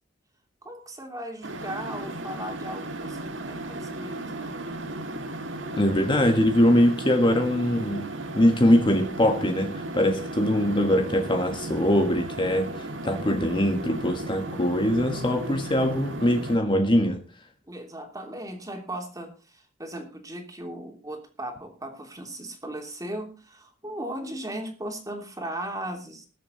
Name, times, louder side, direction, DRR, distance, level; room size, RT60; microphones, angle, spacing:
voice 1, 0.6-4.6 17.7-26.3, right 1 dB, 20° right, 3.1 m, -37 dB
sound 1, 1.4-16.6, right 1 dB, 75° right, 1.8 m, -35 dB
voice 2, 5.7-8.1 8.3-17.2, left 1 dB, 25° left, 1.5 m, -22 dB
21.0 x 7.5 x 4.0 m
head